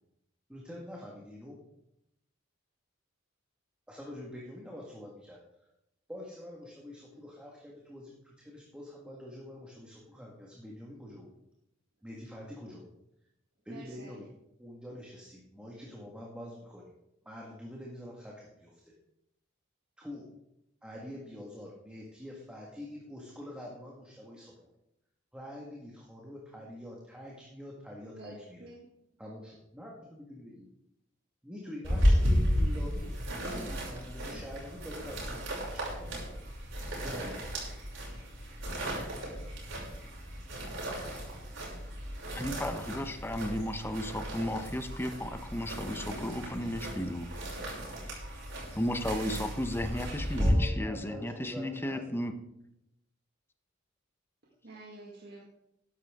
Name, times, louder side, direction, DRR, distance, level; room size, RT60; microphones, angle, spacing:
voice 1, 0.5-1.6 3.9-5.4 6.1-11.3 12.0-12.9 13.7-14.3 14.6-16.9 17.3-18.9 20.0-20.3 20.8-24.7 25.3-28.7 29.2-29.4 29.7-30.7 31.4-36.2 36.9-37.5 50.4-52.3, left 1 dB, 5° right, -3 dB, 1.7 m, -45 dB
voice 2, 13.7-14.2 28.0-28.8 54.6-55.4, right 2 dB, 55° right, -2 dB, 1.7 m, -49 dB
sound 1, 31.8-50.5, equal, 75° right, 5.7 m, -34 dB
voice 3, 42.4-47.3 48.8-52.3, left 1 dB, 10° left, 7 dB, 0.9 m, -34 dB
13.0 x 11.0 x 3.6 m, 0.83 s
head